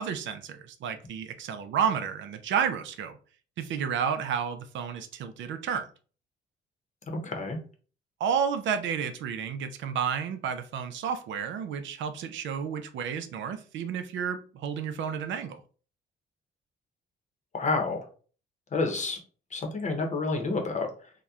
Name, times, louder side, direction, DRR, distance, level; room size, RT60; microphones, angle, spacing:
voice 1, 0.0-3.1 3.6-5.9 8.2-15.6, right 7 dB, 70° right, 0.4 m, -31 dB
voice 2, 7.1-7.6 17.5-18.1 18.7-19.2 19.5-21.1, left 3 dB, 35° left, 0.8 m, -29 dB
2.8 x 2.1 x 2.3 m
cardioid pair, 90°, 20 cm